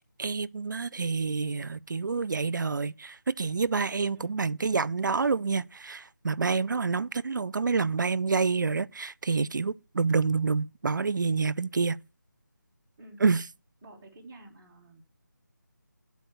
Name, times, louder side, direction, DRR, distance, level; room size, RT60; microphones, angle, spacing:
voice 1, 0.2-12.0 13.2-13.4, right 4 dB, 70° right, 0.4 m, -28 dB
voice 2, 4.1-4.5 6.7-7.0 13.0-13.2 13.8-15.0, right 2 dB, 5° right, 0.5 m, -50 dB
9.3 x 4.4 x 6.8 m
figure-of-eight pair, 175°, 11 cm